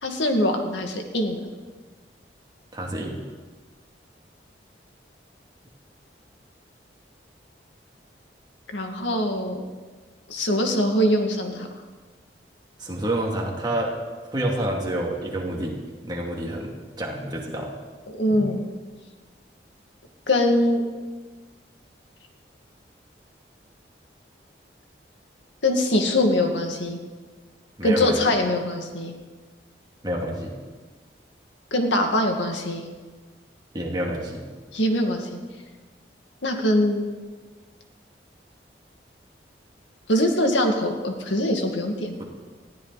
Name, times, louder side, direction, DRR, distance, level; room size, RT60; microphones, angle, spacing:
voice 1, 0.0-1.4 8.7-9.6 10.3-11.7 18.2-18.6 20.3-20.8 25.6-27.0 27.8-29.1 31.7-32.8 34.7-35.3 36.4-37.0 40.1-42.2, left 1 dB, 90° left, 3 dB, 2.2 m, -22 dB
voice 2, 2.7-3.2 12.8-13.9 14.3-15.8 16.0-17.7 18.3-18.4 27.8-28.3 30.0-30.5 33.7-34.4, right 1 dB, 25° right, -1 dB, 2.5 m, -28 dB
20.0 x 15.0 x 4.1 m, 1.4 s
head